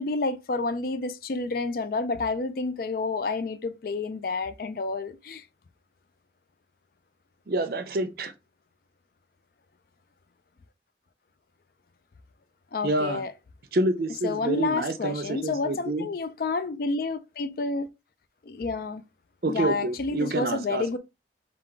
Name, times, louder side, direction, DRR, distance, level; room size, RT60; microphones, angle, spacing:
voice 1, 0.0-5.4 12.7-13.3 14.2-17.9 18.4-19.0 19.5-21.0, left 3 dB, 50° left, 0.4 m, -29 dB
voice 2, 7.5-8.3 12.8-13.2 13.7-16.1 19.4-20.8, right 2 dB, 55° right, 0.5 m, -27 dB
3.9 x 2.4 x 4.5 m
head